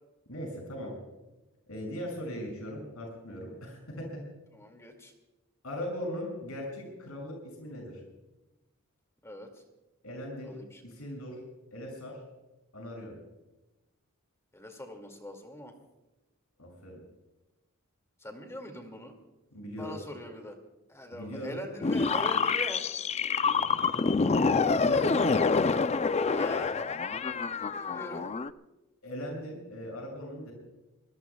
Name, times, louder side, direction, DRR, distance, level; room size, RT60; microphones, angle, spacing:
voice 1, 0.3-0.9 1.7-4.2 5.6-8.0 10.0-10.5 10.8-11.4 11.7-12.2 12.7-13.1 16.6-17.0 19.5-20.0 21.1-21.6 24.8-25.3 29.0-30.5, equal, 80° left, 0 dB, 6.7 m, -39 dB
voice 2, 4.5-5.1 9.2-9.6 10.4-10.8 14.5-15.7 18.2-19.1 19.8-20.6 20.9-22.8 25.4-25.7 26.3-26.8 27.8-28.3, left 1 dB, 15° left, 4 dB, 2.2 m, -42 dB
sound 1, 21.8-28.5, left 4 dB, 30° left, 0.4 m, -27 dB
26.0 x 19.5 x 2.3 m, 1.0 s
head